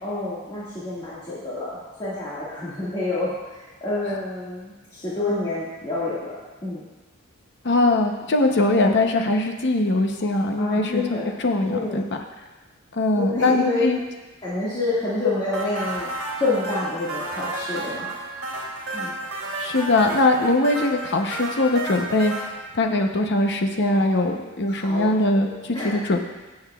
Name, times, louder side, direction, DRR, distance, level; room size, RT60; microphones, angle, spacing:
voice 1, 0.0-6.4 6.6-6.9 10.6-11.3 11.7-12.0 13.1-13.8 14.4-16.1 16.4-18.1 18.9-19.2 23.9-24.2 24.7-25.1 25.4-26.0, left 2 dB, 25° left, -11 dB, 1.9 m, -28 dB
voice 2, 7.6-11.0 11.4-12.0 12.9-14.0 19.6-22.3 22.7-26.2, left 2 dB, 55° left, 4 dB, 0.8 m, -21 dB
sound 1, 15.5-22.4, right 2 dB, 65° right, 2.9 m, -32 dB
16.0 x 7.9 x 2.4 m, 1.2 s
head